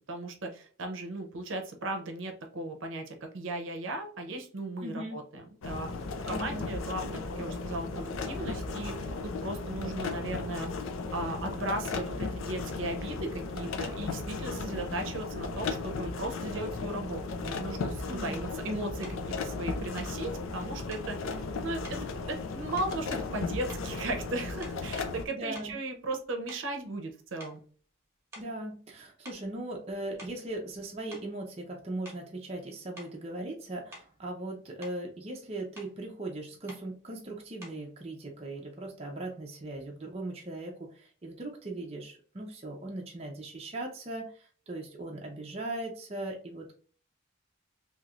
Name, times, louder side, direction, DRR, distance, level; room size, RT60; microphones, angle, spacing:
voice 1, 0.1-5.9 6.3-10.7 11.1-22.0 22.3-27.6, right 2 dB, 70° right, 4 dB, 0.7 m, -37 dB
voice 2, 4.8-5.2 6.3-6.8 18.1-18.3 25.3-25.7 28.4-46.7, right 2 dB, 30° right, 0 dB, 0.5 m, -39 dB
sound 1, 5.6-25.3, left 3 dB, 75° left, 0.5 m, -36 dB
sound 2, 19.0-19.2 20.0-20.2 20.9-21.1 21.8-22.1 22.8-23.4 23.7-24.1 24.6-24.9 25.5-27.1 27.4-27.6 28.3-28.6 29.2-29.5 30.0-30.5 31.1-31.3 32.0-32.3 32.9-33.2 33.9-34.2 34.6-35.0 35.7-36.0 36.7-36.9 37.6-37.9, equal, 15° right, 1.1 m, -50 dB
3.0 x 2.8 x 2.4 m, 0.43 s
head